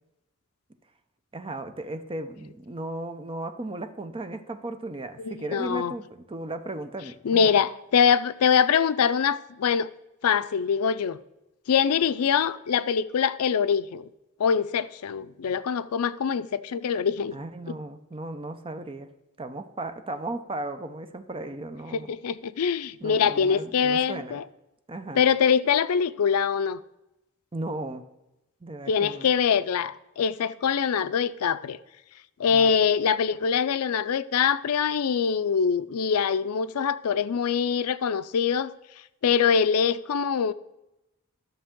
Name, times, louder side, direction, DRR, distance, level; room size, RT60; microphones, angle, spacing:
voice 1, 1.3-7.5 17.3-19.1 19.4-22.1 23.0-24.3 24.9-25.2 27.5-28.0 28.6-29.3 32.5-32.7, right 2 dB, 25° right, 0.6 m, -36 dB
voice 2, 5.2-5.9 7.2-9.9 10.2-11.2 11.7-14.1 14.4-17.4 17.7-17.8 21.9-24.4 25.1-26.8 28.9-31.8 32.4-38.7 39.2-40.5, left 7 dB, 75° left, 0.4 m, -24 dB
12.5 x 6.8 x 3.7 m
head